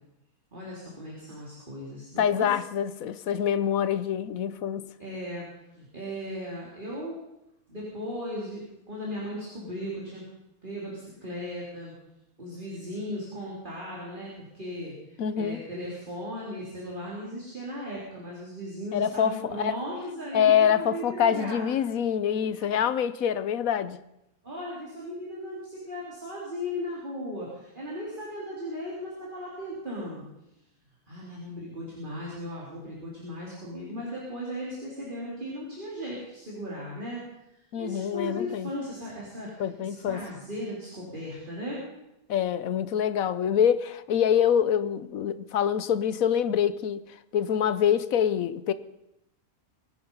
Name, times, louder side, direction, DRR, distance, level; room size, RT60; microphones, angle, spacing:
voice 1, 0.5-2.5 5.0-5.5 5.7-7.2 7.7-10.2 10.6-11.9 12.4-21.6 22.6-22.7 24.4-30.3 31.1-37.2 37.8-41.8, equal, 35° right, 3.9 m, -37 dB
voice 2, 2.2-4.9 15.2-15.6 18.9-19.8 20.3-24.0 37.7-38.7 39.6-40.2 42.3-47.0 47.3-48.7, left 8 dB, 70° left, 1.2 m, -25 dB
23.0 x 10.5 x 5.5 m
omnidirectional pair, 1.5 m